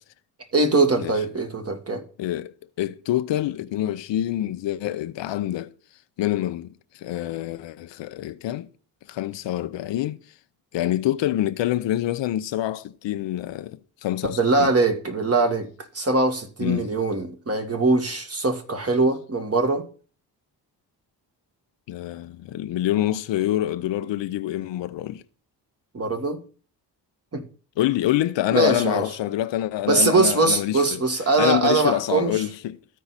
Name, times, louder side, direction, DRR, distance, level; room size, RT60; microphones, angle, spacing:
voice 1, 0.5-2.0 14.2-15.7 15.9-19.8 25.9-26.4 27.3-27.4 28.5-29.0 29.9-32.3, right 3 dB, 30° right, 1.8 m, -22 dB
voice 2, 2.2-5.7 6.2-8.7 9.1-10.2 10.7-14.7 16.6-16.9 21.9-25.2 27.8-31.0 31.4-32.8, left 13 dB, 70° left, 0.7 m, -26 dB
13.5 x 4.7 x 4.1 m
supercardioid pair, 60°, 45 cm